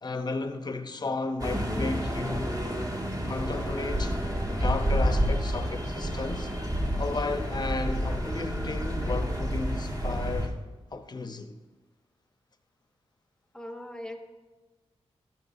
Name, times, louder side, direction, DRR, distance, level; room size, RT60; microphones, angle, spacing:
voice 1, 0.0-2.6 3.3-4.2 4.5-6.5 7.0-10.5 10.9-11.6, left 3 dB, 40° left, 0.8 m, -33 dB
sound 1, 1.4-10.5, equal, 35° right, 1.7 m, -29 dB
voice 2, 13.5-14.2, left 1 dB, 5° left, 1.1 m, -39 dB
13.0 x 10.0 x 2.7 m
cardioid pair, 80°, 11 cm